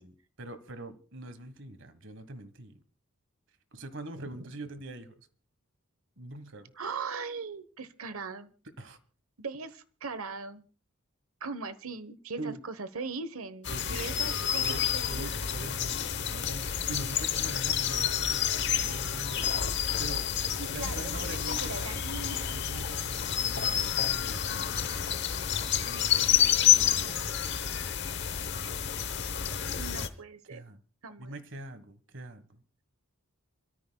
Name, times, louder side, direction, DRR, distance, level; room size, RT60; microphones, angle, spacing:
voice 1, 0.0-2.8 3.7-5.3 6.2-6.7 8.8-9.0 12.4-12.6 13.7-18.5 18.8-20.3 20.7-22.0 22.5-25.4 25.8-27.4 30.5-30.8 31.2-32.6, right 2 dB, 55° right, 1.4 m, -43 dB
voice 2, 4.1-4.5 6.8-8.5 9.4-10.7 11.4-15.6 20.6-22.6 26.7-27.5 29.8-30.6 31.0-31.3, right 4 dB, 75° right, 1.1 m, -40 dB
sound 1, 13.6-30.1, left 9 dB, 50° left, 1.0 m, -29 dB
28.5 x 13.5 x 2.3 m
head